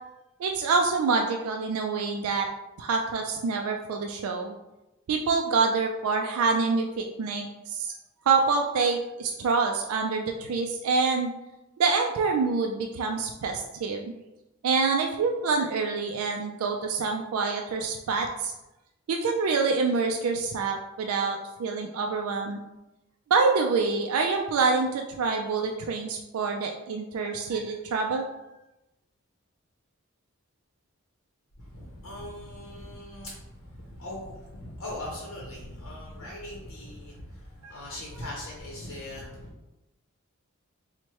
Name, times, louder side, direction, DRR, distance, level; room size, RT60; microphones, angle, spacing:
voice 1, 0.4-2.5 2.8-4.6 5.1-7.9 8.3-11.3 11.8-14.1 14.6-18.5 19.1-22.6 23.3-28.2 37.6-37.7, right 4 dB, 85° right, 3 dB, 0.3 m, -26 dB
voice 2, 31.6-39.5, left 1 dB, 70° left, -4 dB, 0.7 m, -40 dB
4.5 x 2.1 x 2.9 m, 0.96 s
head